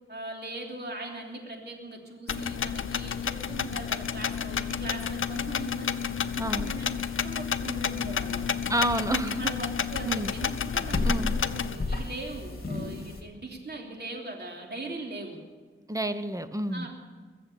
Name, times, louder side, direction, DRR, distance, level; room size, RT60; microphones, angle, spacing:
voice 1, 0.1-6.9 7.2-8.4 9.3-15.4 16.7-16.9, right 2 dB, 55° right, 1 dB, 3.2 m, -40 dB
sound 1, 2.3-11.7, left 7 dB, 75° left, 0.6 m, -31 dB
sound 2, 4.9-13.2, left 3 dB, 50° left, 2.5 m, -36 dB
voice 2, 6.4-6.7 8.7-9.4 10.1-10.3 11.0-11.3 15.9-16.9, right 1 dB, 15° right, 11 dB, 1.0 m, -29 dB
22.0 x 7.6 x 8.4 m, 1.4 s
wide cardioid pair, 70°, 21 cm